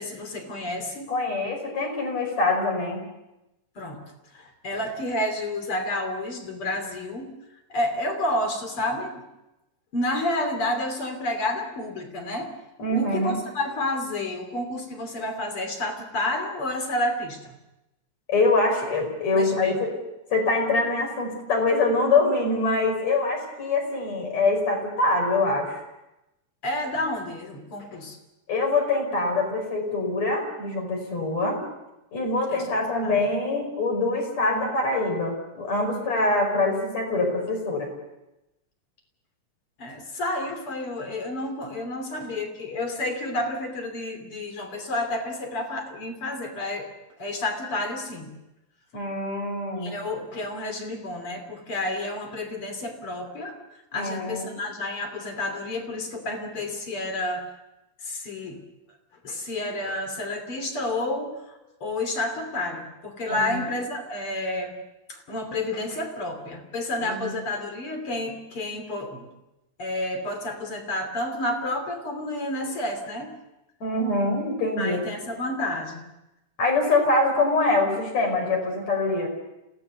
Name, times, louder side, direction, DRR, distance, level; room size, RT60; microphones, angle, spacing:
voice 1, 0.0-1.1 3.8-4.0 4.3-7.3 7.7-9.2 9.9-12.5 12.9-17.5 19.3-19.8 26.6-28.2 32.5-33.2 39.8-46.9 47.2-48.3 49.8-53.6 53.9-57.5 58.0-58.6 59.2-61.4 61.8-64.7 65.1-69.3 69.8-73.3 74.8-76.1, left 1 dB, 50° left, 5 dB, 3.7 m, -30 dB
voice 2, 1.1-3.0 12.8-13.4 18.3-19.9 20.3-25.8 28.5-31.6 32.1-37.9 48.9-50.0 53.9-54.5 63.3-63.6 67.0-67.3 73.8-75.0 76.6-79.3, left 2 dB, 65° left, 2 dB, 6.6 m, -24 dB
28.0 x 17.5 x 6.9 m, 0.94 s
omnidirectional pair, 3.3 m